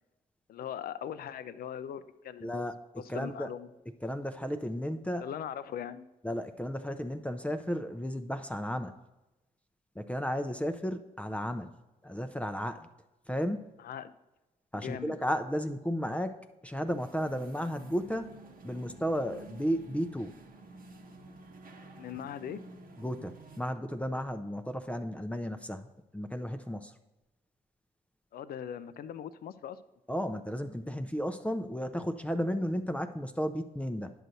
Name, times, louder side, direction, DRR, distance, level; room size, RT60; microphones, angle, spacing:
voice 1, 0.5-2.6 3.0-3.7 5.2-6.0 13.8-14.1 14.7-15.1 22.0-22.6 28.3-29.8, left 9 dB, 60° left, 14 dB, 0.4 m, -40 dB
voice 2, 2.4-2.7 3.1-3.5 4.0-5.3 6.2-8.9 10.0-11.7 12.0-12.9 13.3-13.7 14.7-16.4 16.6-18.3 18.6-20.4 23.0-25.9 26.1-26.9 30.1-34.1, equal, 5° left, 7 dB, 0.5 m, -33 dB
sound 1, 16.9-23.7, right 2 dB, 55° right, 1.0 m, -51 dB
11.0 x 6.4 x 2.7 m, 1.0 s
hypercardioid pair, 50°, 17 cm